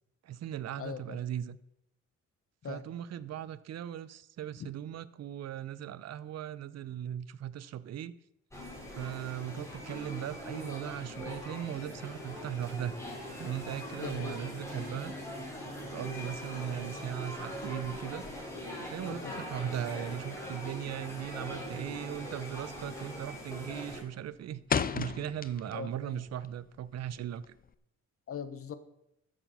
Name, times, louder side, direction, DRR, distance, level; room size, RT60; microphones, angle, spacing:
voice 1, 0.2-1.6 2.6-8.1 8.9-13.0 13.4-15.1 15.8-18.2 18.7-27.6, right 10 dB, 60° right, 0.7 m, -38 dB
voice 2, 0.8-1.2 2.6-2.8 13.9-14.4 19.1-19.4 25.7-26.2 28.3-28.8, left 7 dB, 50° left, 1.2 m, -41 dB
sound 1, 8.5-24.0, equal, 10° left, 4.2 m, -42 dB
sound 2, 21.5-21.9 22.2-22.5 22.8-23.3 23.6-26.0 26.3-27.7, left 6 dB, 30° left, 0.6 m, -34 dB
13.0 x 7.4 x 5.5 m
cardioid pair, 90°, 30 cm